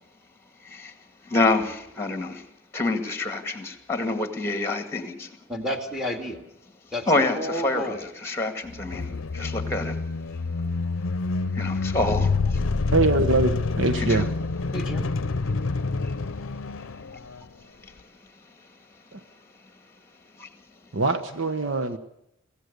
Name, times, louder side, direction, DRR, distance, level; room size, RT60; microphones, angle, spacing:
voice 1, 0.6-0.9 1.2-2.4 2.7-5.4 7.1-10.1 11.5-12.7 14.0-14.3 15.6-15.7 16.0-16.1 16.8-17.0 20.4-20.5, left 2 dB, 15° left, 7 dB, 2.0 m, -27 dB
voice 2, 5.5-6.4 6.9-8.1 14.7-15.1, left 1 dB, ahead, 4 dB, 2.3 m, -31 dB
sound 1, 8.7-17.5, left 3 dB, 80° left, 0.6 m, -27 dB
voice 3, 12.9-14.3 19.1-19.2 20.9-22.0, right 2 dB, 65° right, 8 dB, 1.2 m, -23 dB
24.0 x 16.0 x 6.8 m, 0.83 s
head